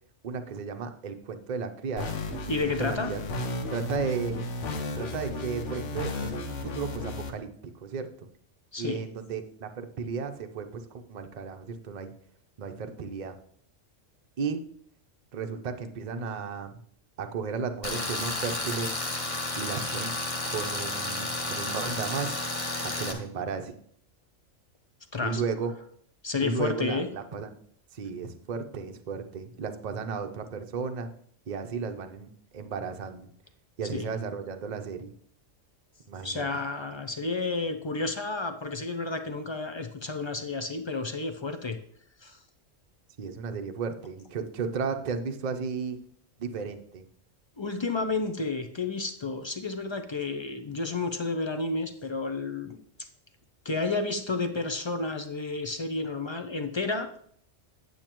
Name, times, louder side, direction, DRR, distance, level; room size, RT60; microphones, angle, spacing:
voice 1, 0.2-2.2 2.8-3.2 3.7-4.4 5.0-8.3 8.8-12.1 12.6-13.4 14.4-14.6 15.3-16.8 17.2-18.9 19.6-20.1 20.4-22.4 22.8-23.7 25.2-25.7 26.4-27.6 27.9-31.1 31.5-33.3 33.8-35.1 36.1-36.4 43.2-46.0 46.4-47.0, right 5 dB, 45° right, 6 dB, 0.7 m, -34 dB
sound 1, 2.0-7.3, left 2 dB, 70° left, 1.2 m, -34 dB
voice 2, 2.5-3.1 8.7-9.0 25.1-25.4 26.2-27.1 33.9-34.1 36.2-41.8 42.2-42.4 47.6-52.8 53.6-57.1, left 3 dB, 45° left, 8 dB, 0.3 m, -31 dB
Tools, 17.8-23.1, left 2 dB, 30° left, 1.0 m, -32 dB
8.7 x 8.4 x 3.0 m, 0.62 s
omnidirectional pair, 1.3 m